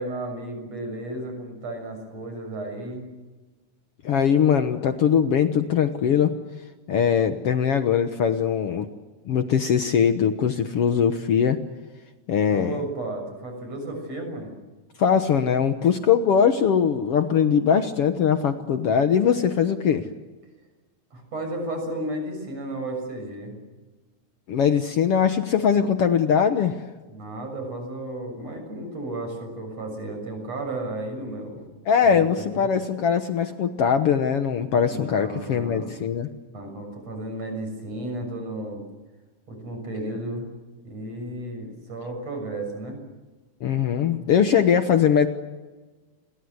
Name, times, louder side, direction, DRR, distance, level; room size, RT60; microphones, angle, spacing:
voice 1, 0.0-3.1 12.5-14.5 21.1-23.6 27.1-31.6 32.0-32.7 34.7-35.9 36.5-38.8 39.5-40.5 40.8-43.0, right 1 dB, 55° right, 5 dB, 7.9 m, -33 dB
voice 2, 4.0-6.3 6.9-8.9 9.3-11.6 12.3-12.8 15.0-20.0 24.5-26.8 31.9-36.3 43.6-45.3, left 7 dB, 60° left, 8 dB, 1.9 m, -21 dB
30.0 x 22.5 x 8.0 m, 1.2 s
omnidirectional pair, 3.5 m